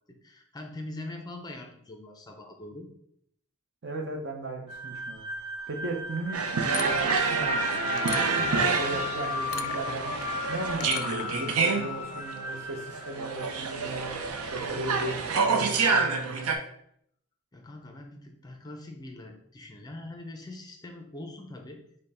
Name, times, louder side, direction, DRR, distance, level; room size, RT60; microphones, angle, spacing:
voice 1, 0.2-2.9 17.5-21.8, left 2 dB, 20° left, 3 dB, 0.5 m, -42 dB
voice 2, 3.8-5.2 5.7-6.4 6.8-10.1 10.5-14.2 14.5-16.5, right 2 dB, 50° right, 2 dB, 0.7 m, -36 dB
sound 1, 4.7-13.9, left 3 dB, 15° right, 0.9 m, -36 dB
sound 2, 6.1-11.4, left 9 dB, 75° left, 0.3 m, -41 dB
sound 3, 6.3-16.5, right 5 dB, 90° right, 0.5 m, -28 dB
5.4 x 2.1 x 4.1 m, 0.71 s
head